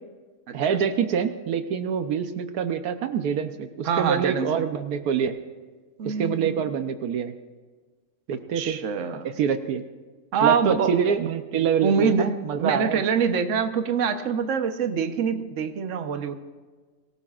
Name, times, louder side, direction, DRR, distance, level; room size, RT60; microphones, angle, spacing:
voice 1, 0.5-5.3 6.0-7.3 8.3-8.8 9.2-9.8 10.4-13.0, right 7 dB, 75° right, 8 dB, 1.3 m, -25 dB
voice 2, 3.8-4.5 6.0-6.6 8.5-9.3 10.3-10.9 11.8-16.3, right 6 dB, 55° right, 7 dB, 1.2 m, -25 dB
24.5 x 17.5 x 2.5 m, 1.4 s
omnidirectional pair, 1.6 m